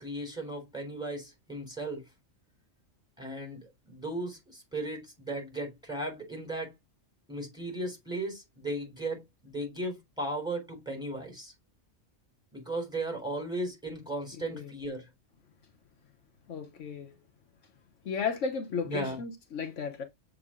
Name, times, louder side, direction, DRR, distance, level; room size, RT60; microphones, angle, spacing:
voice 1, 0.0-2.1 3.2-6.7 7.3-11.5 12.5-15.1 18.8-19.2, right 1 dB, 5° right, 3.3 m, -36 dB
voice 2, 16.5-17.1 18.0-20.0, left 5 dB, 75° left, 1.2 m, -34 dB
7.1 x 3.7 x 3.7 m
omnidirectional pair, 1.3 m